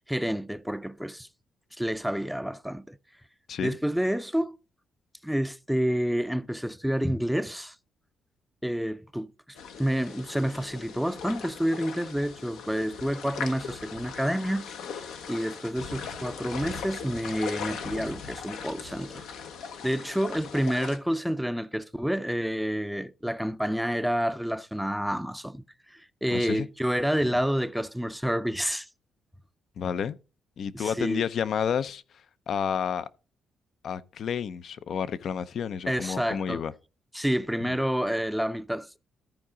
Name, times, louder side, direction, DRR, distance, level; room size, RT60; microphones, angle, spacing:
voice 1, 0.1-1.3 1.8-3.0 3.6-4.6 5.2-7.8 8.6-9.3 9.8-14.7 15.3-19.3 19.8-28.9 30.7-31.2 35.9-36.6 37.1-39.0, equal, ahead, 0.5 m, -29 dB
sound 1, 9.6-21.0, left 6 dB, 85° left, 1.1 m, -39 dB
voice 2, 26.3-26.7 29.8-30.2 30.6-32.0 32.5-33.1 33.8-36.7, left 7 dB, 60° left, 0.5 m, -30 dB
13.5 x 4.8 x 3.7 m
cardioid pair, 90°, 0 cm